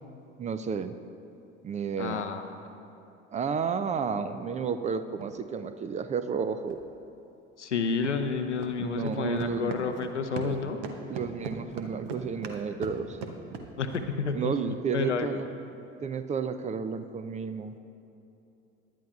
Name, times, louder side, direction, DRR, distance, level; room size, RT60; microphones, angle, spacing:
voice 1, 0.4-0.9 1.6-2.2 3.3-6.8 8.8-9.7 10.4-10.6 11.1-13.2 14.3-15.5 16.0-17.7, right 6 dB, 20° right, 11 dB, 0.4 m, -32 dB
voice 2, 2.0-2.5 7.6-10.8 13.8-15.4, left 5 dB, 85° left, 7 dB, 0.7 m, -30 dB
sound 1, 5.1-5.3 6.7-6.8 8.0-8.1 8.6-8.7 9.0-10.6 10.8-14.1, right 5 dB, 60° right, 1.0 m, -39 dB
17.5 x 11.0 x 2.4 m, 2.9 s
figure-of-eight pair, 65°, 34 cm